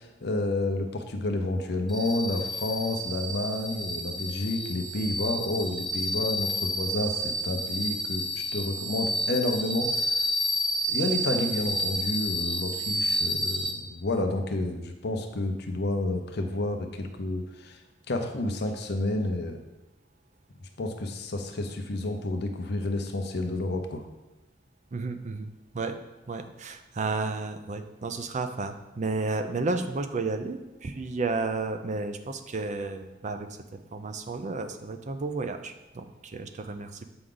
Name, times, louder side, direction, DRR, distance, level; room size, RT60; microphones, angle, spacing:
voice 1, 0.0-10.2 10.9-17.8 18.1-19.6 20.8-24.0, left 2 dB, 60° left, 5 dB, 0.7 m, -30 dB
sound 1, 1.9-13.7, equal, ahead, 0.8 m, -30 dB
voice 2, 24.9-26.0 26.3-33.5 33.9-37.1, right 3 dB, 40° right, 8 dB, 0.5 m, -32 dB
7.8 x 4.8 x 3.8 m, 1.0 s
head